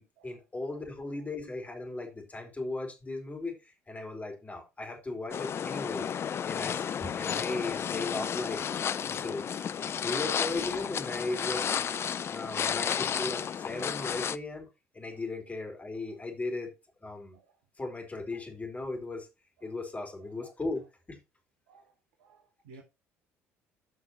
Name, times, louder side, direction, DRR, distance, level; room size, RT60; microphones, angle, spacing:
voice 1, 0.0-6.1 6.4-8.6 9.1-9.4 10.0-11.7 12.3-14.7 14.9-16.7 17.0-17.4 17.8-19.3 19.6-21.2, left 2 dB, 20° left, 4.5 m, -37 dB
sound 1, 5.3-14.4, left 8 dB, 35° left, 0.5 m, -32 dB
voice 2, 21.7-22.8, right 4 dB, 65° right, 1.8 m, -59 dB
14.0 x 6.0 x 3.1 m
figure-of-eight pair, 55°, 7 cm